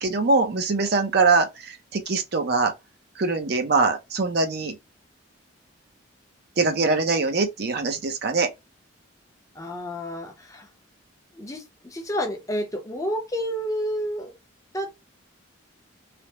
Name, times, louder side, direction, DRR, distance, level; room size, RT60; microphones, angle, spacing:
voice 1, 0.0-2.7 3.2-4.7 6.6-8.5, right 3 dB, 50° right, 0.5 m, -23 dB
voice 2, 9.5-10.7 11.3-14.3 14.7-14.9, equal, 15° left, 0.6 m, -30 dB
3.3 x 2.0 x 2.8 m
head